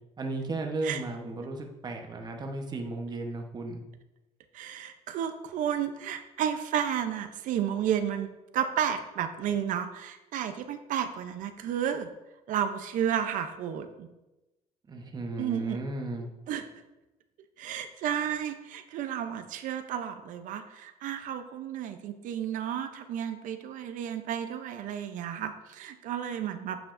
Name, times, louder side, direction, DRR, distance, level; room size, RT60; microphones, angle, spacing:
voice 1, 0.2-3.8 14.9-16.3, right 2 dB, 30° right, 2 dB, 1.0 m, -35 dB
voice 2, 4.5-12.1 12.5-14.1 15.4-15.8 16.5-16.6 17.6-26.8, right 9 dB, 70° right, 8 dB, 0.6 m, -32 dB
8.7 x 7.1 x 2.6 m, 1.0 s
cardioid pair, 120°, 14 cm